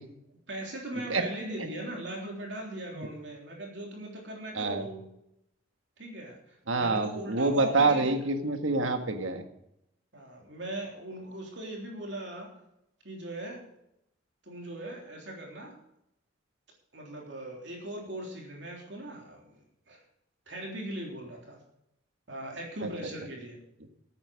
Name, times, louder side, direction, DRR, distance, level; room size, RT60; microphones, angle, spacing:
voice 1, 0.5-5.0 6.0-8.2 10.1-12.5 13.0-13.6 14.4-15.8 16.9-19.5 19.9-20.0 20.5-21.6 22.3-23.6, right 1 dB, 60° right, 0 dB, 3.3 m, -39 dB
voice 2, 6.7-9.4 22.8-22.9, right 3 dB, 85° right, 6 dB, 1.6 m, -27 dB
12.5 x 9.1 x 6.3 m, 0.80 s
head